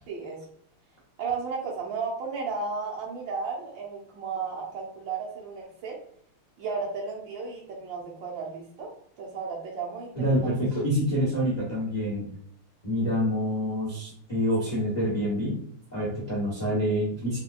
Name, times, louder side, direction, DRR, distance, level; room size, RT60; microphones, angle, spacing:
voice 1, 0.1-0.4 1.2-6.0 6.6-8.9 9.2-10.5, right 4 dB, 70° right, -1 dB, 1.3 m, -34 dB
voice 2, 10.1-12.3 12.8-15.6 15.9-17.4, equal, 60° left, -5 dB, 0.4 m, -27 dB
4.4 x 2.1 x 2.4 m, 0.63 s
omnidirectional pair, 2.4 m